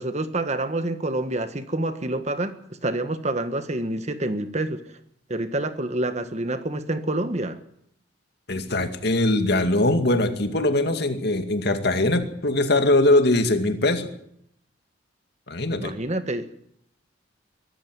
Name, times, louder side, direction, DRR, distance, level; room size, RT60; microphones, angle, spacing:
voice 1, 0.0-4.8 5.3-7.6 15.8-16.5, right 2 dB, 35° right, 10 dB, 1.5 m, -27 dB
voice 2, 8.5-14.1 15.5-15.9, left 2 dB, 60° left, 7 dB, 2.3 m, -21 dB
23.5 x 13.0 x 9.5 m, 0.73 s
head